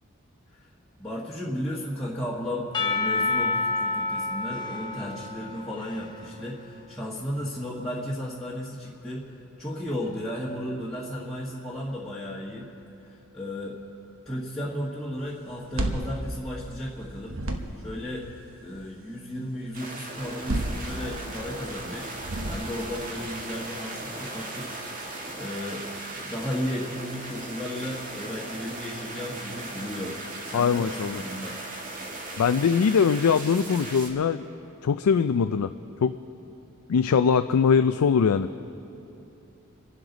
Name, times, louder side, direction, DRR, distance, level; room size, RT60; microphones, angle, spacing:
voice 1, 1.0-12.7 13.0-13.8 14.2-17.4 17.8-18.3 18.6-24.7 25.4-25.9 26.1-30.2 30.4-31.6, left 1 dB, ahead, -8 dB, 1.3 m, -34 dB
Percussion / Church bell, 2.7-6.9, left 3 dB, 20° left, 0.8 m, -29 dB
sound 1, 15.5-17.0 17.2-18.0 20.2-21.4 22.2-23.0, right 1 dB, 65° right, 1.2 m, -31 dB
sound 2, 19.7-34.1, right 2 dB, 40° right, 1.8 m, -38 dB
voice 2, 30.5-31.2 32.4-34.4 34.8-35.7 36.0-36.2 36.9-38.5, left 6 dB, 90° left, 10 dB, 0.4 m, -22 dB
27.0 x 11.0 x 4.0 m, 2.9 s
head